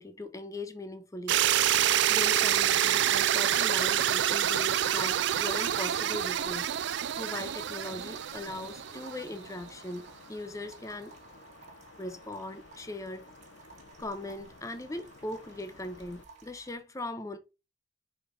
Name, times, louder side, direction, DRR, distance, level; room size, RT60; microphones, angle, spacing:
voice 1, 0.0-1.4 2.1-6.7 7.2-11.1 12.0-13.3 14.0-17.4, left 1 dB, 15° left, 0.6 m, -39 dB
sound 1, 1.3-9.3, right 11 dB, 60° right, 0.3 m, -27 dB
sound 2, 5.1-16.7, right 4 dB, 35° right, 1.7 m, -56 dB
sound 3, 5.6-16.3, left 3 dB, 70° left, 0.8 m, -54 dB
5.1 x 3.9 x 5.0 m
head